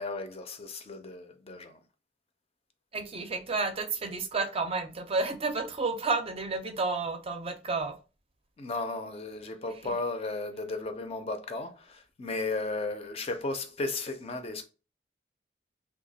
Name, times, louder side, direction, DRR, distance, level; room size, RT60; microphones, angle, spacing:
voice 1, 0.0-1.8 8.6-14.6, left 3 dB, 35° left, 0.4 m, -35 dB
voice 2, 2.9-7.9 9.8-9.9, right 3 dB, 35° right, 0.5 m, -31 dB
2.8 x 2.3 x 3.9 m
head